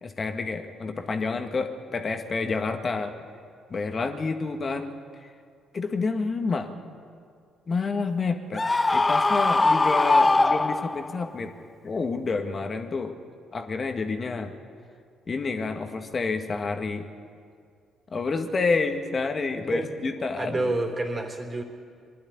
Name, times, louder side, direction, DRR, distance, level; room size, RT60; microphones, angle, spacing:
voice 1, 0.0-3.1 3.7-4.9 5.7-6.7 7.7-8.6 8.9-11.5 11.8-13.1 13.5-14.5 15.3-17.0 18.1-20.7, left 4 dB, 40° left, 5 dB, 1.9 m, -29 dB
Screaming, 8.6-11.2, left 2 dB, 25° left, 0.5 m, -21 dB
voice 2, 20.4-21.6, right 2 dB, 30° right, 2 dB, 3.8 m, -28 dB
23.0 x 12.0 x 9.8 m, 2.2 s
hypercardioid pair, 50°, 0 cm